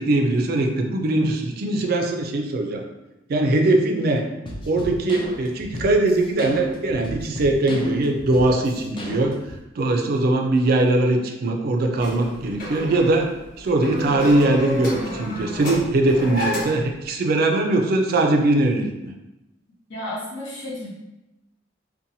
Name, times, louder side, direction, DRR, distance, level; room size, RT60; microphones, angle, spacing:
voice 1, 0.0-2.8 3.3-4.3 4.7-9.4 9.8-13.3 13.6-19.1, right 2 dB, 55° right, 3 dB, 0.4 m, -21 dB
sound 1, 4.4-9.6, left 1 dB, 25° left, 0.3 m, -34 dB
sound 2, 12.0-16.9, left 1 dB, 55° left, 0.9 m, -31 dB
voice 2, 19.9-20.9, left 1 dB, 80° left, -6 dB, 0.9 m, -32 dB
2.6 x 2.1 x 2.7 m, 0.95 s
head